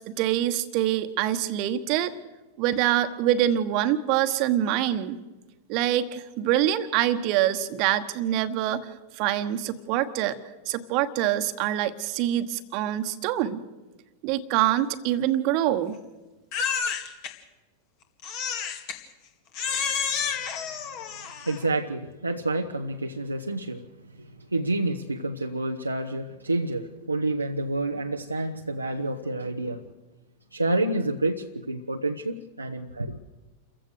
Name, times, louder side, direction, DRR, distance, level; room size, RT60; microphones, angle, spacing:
voice 1, 0.0-2.1 2.6-5.2 5.7-8.9 9.2-10.4 10.7-13.6 14.2-16.0, right 12 dB, 45° right, 1.3 m, -25 dB
Crying sobbing, 16.5-17.3 18.2-19.0 19.5-21.7, left 7 dB, 45° left, 2.2 m, -30 dB
voice 2, 21.4-23.9 24.2-29.8 30.5-33.2, right 2 dB, 85° right, 0.8 m, -29 dB
28.5 x 15.0 x 6.7 m
figure-of-eight pair, 90°, 0 cm